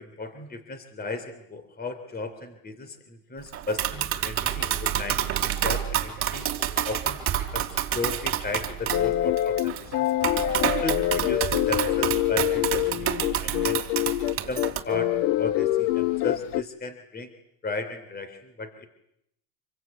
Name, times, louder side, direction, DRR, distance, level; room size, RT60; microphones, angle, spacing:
voice 1, 0.0-6.5 6.8-7.2 7.5-7.7 7.9-10.1 10.6-13.8 14.4-17.3 17.6-18.7, left 3 dB, 20° left, 10 dB, 3.1 m, -35 dB
Tap, 3.5-14.8, right 10 dB, 30° right, 3.4 m, -28 dB
sound 1, 8.9-16.6, left 14 dB, 85° left, 1.3 m, -25 dB
26.5 x 23.5 x 9.3 m, 0.77 s
supercardioid pair, 135°, 47 cm